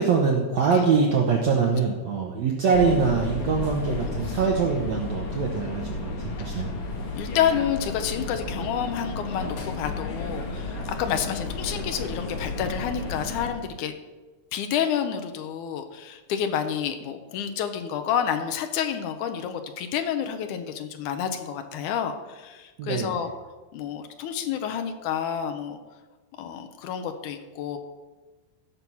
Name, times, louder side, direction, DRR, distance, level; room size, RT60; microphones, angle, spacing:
voice 1, 0.0-6.7 22.8-23.3, right 5 dB, 75° right, 0 dB, 1.6 m, -24 dB
sound 1, 2.7-13.5, left 2 dB, 55° left, 2.6 m, -32 dB
voice 2, 7.2-13.9 14.5-23.3 23.7-25.8 26.4-27.8, left 8 dB, 80° left, 7 dB, 1.8 m, -29 dB
15.0 x 6.1 x 5.6 m, 1.2 s
omnidirectional pair, 4.5 m